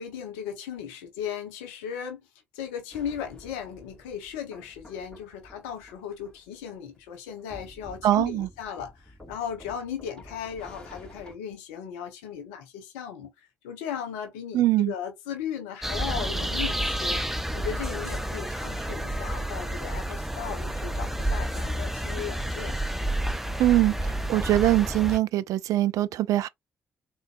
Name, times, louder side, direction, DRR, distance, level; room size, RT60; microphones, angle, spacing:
voice 1, 0.0-2.2 2.5-17.2 17.5-22.8, left 8 dB, 70° left, 0.8 m, -36 dB
sound 1, 2.9-11.4, equal, 10° left, 2.5 m, -50 dB
voice 2, 8.0-8.5 14.5-14.9 23.6-26.5, right 14 dB, 55° right, 0.3 m, -23 dB
sound 2, 15.8-25.2, right 1 dB, 5° right, 0.7 m, -30 dB
3.9 x 3.0 x 2.5 m
figure-of-eight pair, 40°, 7 cm